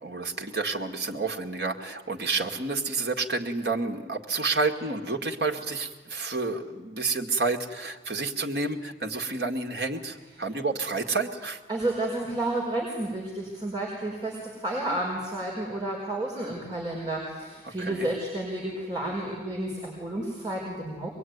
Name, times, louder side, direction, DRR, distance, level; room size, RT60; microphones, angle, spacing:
voice 1, 0.0-11.6 17.8-18.1, right 3 dB, 65° right, 3 dB, 2.1 m, -30 dB
voice 2, 11.7-21.1, right 1 dB, 25° right, -3 dB, 5.3 m, -31 dB
24.5 x 22.0 x 9.5 m, 1.3 s
head